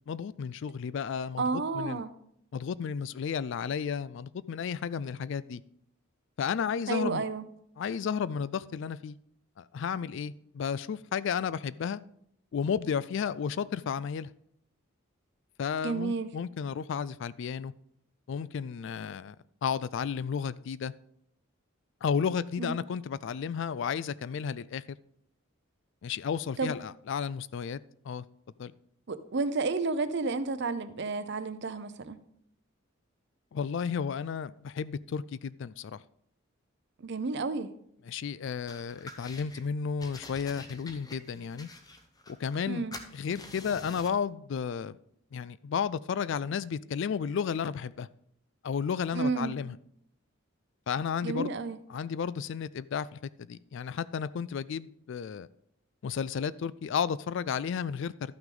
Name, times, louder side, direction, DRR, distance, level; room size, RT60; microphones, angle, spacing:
voice 1, 0.1-2.0 2.5-5.6 6.4-7.2 7.8-9.2 9.6-12.0 12.5-14.3 15.6-17.7 18.3-19.4 19.6-20.9 22.0-25.0 26.0-27.8 28.0-28.3 28.6-28.7 33.5-36.0 38.1-41.7 42.3-42.9 43.1-45.0 45.3-48.1 48.6-49.8 50.9-51.5 51.9-55.5 56.0-58.3, left 6 dB, 60° left, 0.3 m, -33 dB
voice 2, 1.4-2.1 6.9-7.4 15.8-16.3 22.6-22.7 26.6-26.7 29.1-32.2 37.0-37.7 42.7-42.9 49.1-49.6 51.2-51.8, right 3 dB, 55° right, 0.6 m, -31 dB
sound 1, 38.7-39.6 40.0-42.7 42.9-44.2, left 2 dB, 20° left, 0.8 m, -47 dB
12.5 x 5.9 x 3.8 m
head